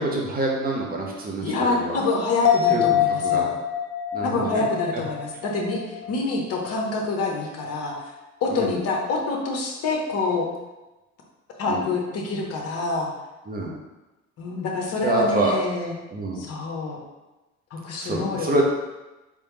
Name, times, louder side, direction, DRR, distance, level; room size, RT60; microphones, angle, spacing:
voice 1, 0.0-2.0 2.7-2.8 3.2-3.5 4.1-4.6 8.5-8.7 11.7-11.9 13.5-13.7 15.0-15.5 16.1-16.4 18.0-18.6, right 2 dB, 20° right, -1 dB, 0.9 m, -26 dB
voice 2, 1.4-3.6 4.2-8.0 8.4-10.5 11.6-13.1 14.4-16.0 16.4-17.0 17.7-18.5, left 3 dB, 35° left, 0 dB, 0.9 m, -26 dB
sound 1, 2.5-6.2 6.5-6.6, left 9 dB, 70° left, 0.6 m, -24 dB
3.4 x 3.3 x 3.1 m, 1.1 s
figure-of-eight pair, 55°, 41 cm